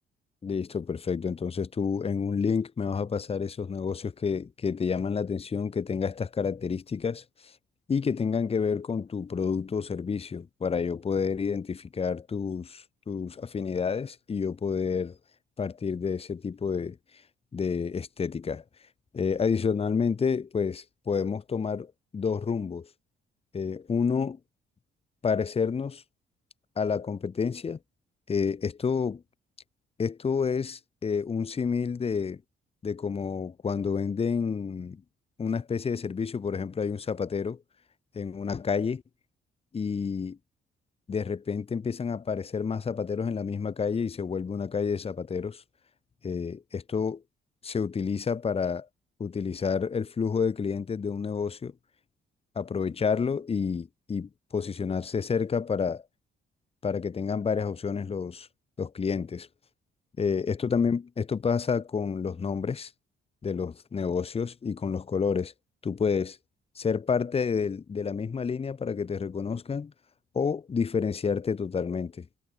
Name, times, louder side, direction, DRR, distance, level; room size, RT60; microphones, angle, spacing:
voice 1, 0.4-7.2 7.9-15.2 15.6-17.0 17.5-18.6 19.1-22.9 23.5-24.4 25.2-26.0 26.8-27.8 28.3-29.2 30.0-32.4 32.8-35.0 35.4-37.6 38.1-39.0 39.7-40.4 41.1-45.6 46.2-47.2 47.6-48.9 49.2-51.7 52.6-56.0 56.8-58.5 58.8-59.5 60.2-62.9 63.4-65.5 65.8-66.4 66.8-69.9 70.3-72.3, left 6 dB, 30° left, 0.9 m, -29 dB
cardioid pair, 90°, 20 cm